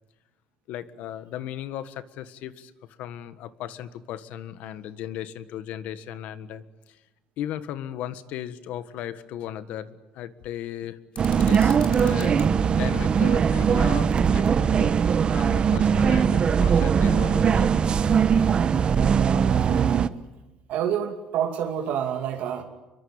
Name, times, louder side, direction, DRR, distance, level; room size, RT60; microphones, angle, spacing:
voice 1, 0.7-2.7 3.0-7.0 7.4-11.0 11.4-14.9 15.3-17.7 18.4-18.5, left 11 dB, 80° left, 12 dB, 1.5 m, -36 dB
sound 1, 11.1-12.5, left 5 dB, 40° left, 3.9 m, -43 dB
sound 2, 11.2-20.1, right 7 dB, 40° right, 1.0 m, -20 dB
voice 2, 19.1-20.1 20.7-22.6, right 9 dB, 80° right, 3 dB, 2.6 m, -28 dB
26.0 x 23.0 x 8.9 m, 1.1 s
cardioid pair, 115°, 3 cm